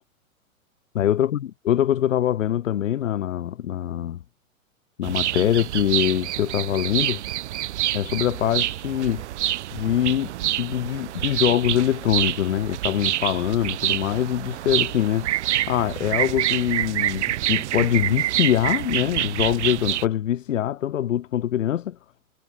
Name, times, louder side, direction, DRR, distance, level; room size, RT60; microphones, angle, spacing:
voice 1, 0.9-4.2 5.0-7.2 7.9-9.2 9.7-22.0, left 11 dB, 60° left, 1.8 m, -24 dB
sound 1, 5.0-20.1, right 14 dB, 50° right, 1.3 m, -27 dB
figure-of-eight pair, 115°, 43 cm